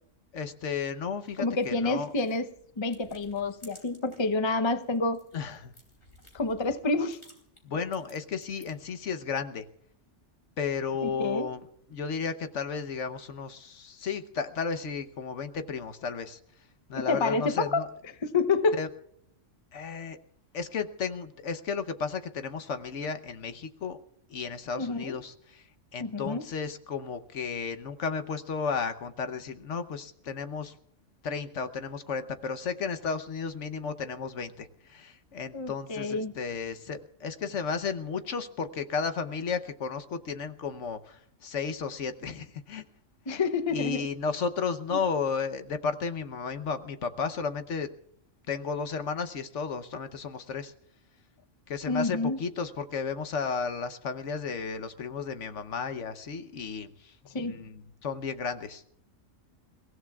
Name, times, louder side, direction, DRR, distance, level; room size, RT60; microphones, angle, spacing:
voice 1, 0.3-2.1 5.3-5.7 7.6-9.6 10.6-16.4 16.9-17.9 18.7-18.9 19.7-20.2 20.5-24.0 24.3-25.6 25.9-30.7 31.2-42.8 43.3-43.4 43.7-47.9 48.5-50.7 51.7-58.8, left 5 dB, 65° left, 1.2 m, -33 dB
sound 1, 1.3-4.3 4.7-8.9, left 1 dB, 45° left, 3.6 m, -57 dB
voice 2, 1.4-2.5 2.8-5.2 6.3-7.2 11.0-11.5 16.9-17.8 18.2-18.8 24.8-25.2 26.0-26.4 35.5-36.3 43.3-44.1 44.9-45.0 51.9-52.4 57.2-57.6, left 3 dB, 25° left, 0.7 m, -28 dB
29.5 x 16.0 x 2.4 m
omnidirectional pair, 1.3 m